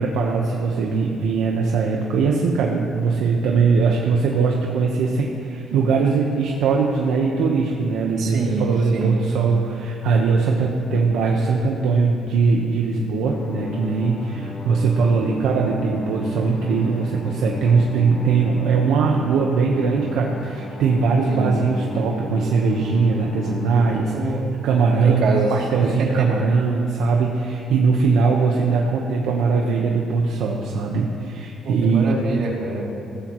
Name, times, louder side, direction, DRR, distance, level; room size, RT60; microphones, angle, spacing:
voice 1, 0.0-24.4 24.6-25.2 25.5-32.1, right 4 dB, 90° right, -1 dB, 1.2 m, -20 dB
voice 2, 8.2-9.2 21.3-21.6 24.1-24.5 25.0-25.5 25.8-26.3 31.6-32.9, right 3 dB, 70° right, -2 dB, 2.9 m, -24 dB
sound 1, 13.2-24.1, left 1 dB, 55° left, 2.0 m, -35 dB
18.5 x 15.5 x 3.2 m, 2.6 s
cardioid pair, 90°, 0 cm